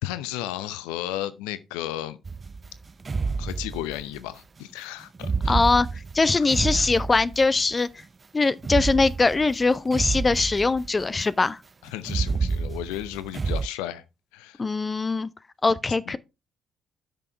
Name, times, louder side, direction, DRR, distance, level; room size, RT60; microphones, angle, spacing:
voice 1, 0.0-2.2 3.4-5.6 6.4-6.5 11.9-14.0 14.3-14.6 16.1-16.2, left 13 dB, 70° left, 0.7 m, -33 dB
sound 1, 2.3-4.2 5.2-7.6 8.6-11.1 12.0-13.7, right 4 dB, 30° right, 0.3 m, -29 dB
voice 2, 5.5-5.9 6.1-7.9 8.3-11.6 14.6-15.3 15.6-16.2, left 3 dB, 25° left, 0.6 m, -22 dB
10.5 x 6.2 x 3.4 m
figure-of-eight pair, 45°, 0 cm